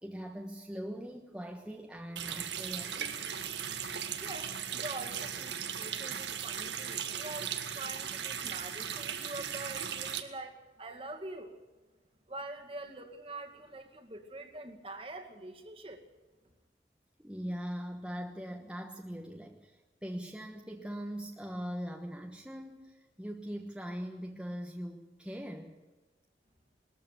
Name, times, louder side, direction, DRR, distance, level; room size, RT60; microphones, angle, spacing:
voice 1, 0.0-3.2 17.2-25.8, equal, 5° right, 1 dB, 1.2 m, -41 dB
Water tap faucet, 2.2-10.2, right 8 dB, 85° right, 1.7 m, -37 dB
voice 2, 4.2-11.6 12.3-16.0, right 2 dB, 30° right, 4 dB, 2.1 m, -45 dB
20.5 x 14.0 x 9.0 m, 1.2 s
head